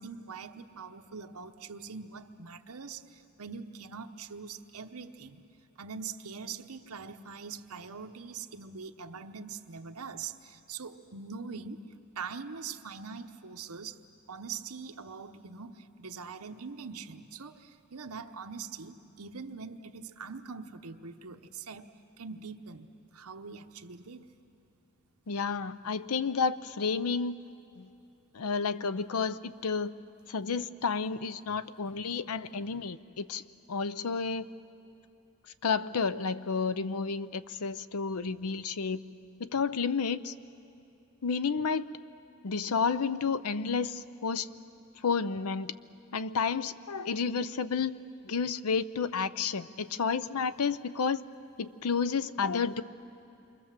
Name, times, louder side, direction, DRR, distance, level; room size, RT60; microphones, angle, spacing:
voice 1, 0.0-5.5 5.8-11.8 12.1-14.0 14.3-21.9 22.2-24.3, right 5 dB, 75° right, 5 dB, 1.0 m, -43 dB
voice 2, 25.3-27.3 27.8-27.9 28.3-29.9 30.3-33.4 33.7-34.5 35.6-39.0 39.4-40.3 41.2-41.8 42.4-44.5 45.0-45.7 46.1-47.9 48.2-51.2 51.6-52.8, left 5 dB, 75° left, 15 dB, 0.6 m, -31 dB
28.0 x 24.0 x 7.5 m, 2.7 s
head